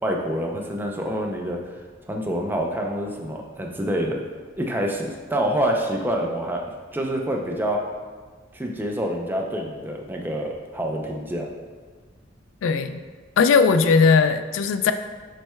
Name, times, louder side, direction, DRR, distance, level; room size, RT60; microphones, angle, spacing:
voice 1, 0.0-4.2 4.6-6.7 6.9-7.8 8.5-11.5, right 1 dB, 10° right, 1 dB, 0.5 m, -27 dB
voice 2, 12.6-13.0 13.4-14.9, left 5 dB, 85° left, 9 dB, 0.3 m, -18 dB
7.4 x 3.2 x 2.2 m, 1.4 s
head